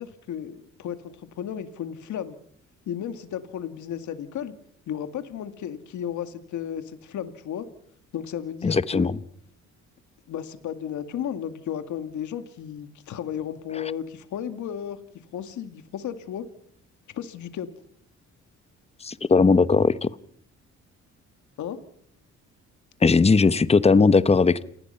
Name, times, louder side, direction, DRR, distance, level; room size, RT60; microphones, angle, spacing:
voice 1, 0.0-2.4 2.9-4.5 4.9-7.7 8.1-9.1 10.3-15.0 15.3-16.5 17.1-17.7 21.6-21.8, left 9 dB, 75° left, 9 dB, 2.2 m, -34 dB
voice 2, 8.6-9.2 19.0-20.1 23.0-24.6, left 4 dB, 20° left, 15 dB, 1.0 m, -18 dB
28.5 x 19.5 x 5.7 m, 0.65 s
cardioid pair, 90°, 30 cm